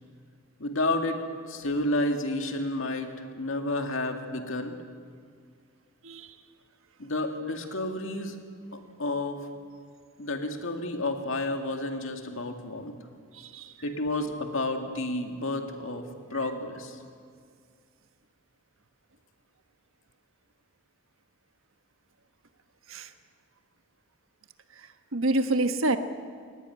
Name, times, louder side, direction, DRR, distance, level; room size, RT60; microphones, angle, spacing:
voice 1, 0.6-1.2 1.5-4.8 7.0-8.4 8.7-9.4 10.2-12.9 13.8-17.0, left 2 dB, 65° left, 5 dB, 2.3 m, -31 dB
voice 2, 6.0-6.3 13.3-13.7 22.9-23.1 25.1-26.0, right 2 dB, 70° right, 8 dB, 1.4 m, -27 dB
22.0 x 19.0 x 10.0 m, 2.1 s
head